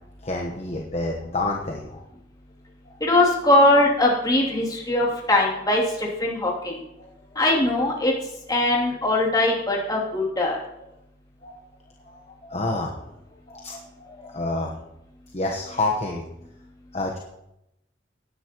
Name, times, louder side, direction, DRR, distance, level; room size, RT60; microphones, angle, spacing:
voice 1, 0.2-2.0 2.9-3.0 7.0-7.3 11.4-11.6 12.0-12.9 13.5-14.8 15.3-16.3 16.9-17.2, left 2 dB, 40° left, 0 dB, 1.1 m, -29 dB
voice 2, 3.0-6.8 7.4-8.1 8.5-10.6, left 1 dB, 20° left, -3 dB, 2.8 m, -21 dB
18.5 x 10.0 x 3.0 m, 0.86 s
head